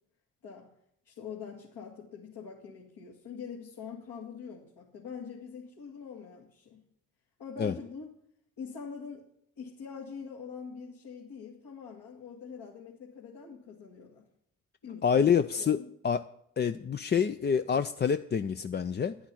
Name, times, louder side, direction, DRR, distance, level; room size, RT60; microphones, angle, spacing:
voice 1, 0.4-0.7 1.0-6.8 7.4-8.1 8.6-9.3 9.6-14.3 14.8-15.9, left 6 dB, 65° left, -3 dB, 2.3 m, -44 dB
voice 2, 15.0-15.8 16.0-16.2 16.6-19.2, left 7 dB, 25° left, 11 dB, 0.4 m, -27 dB
10.0 x 10.0 x 6.2 m, 0.70 s
hypercardioid pair, 40°, 44 cm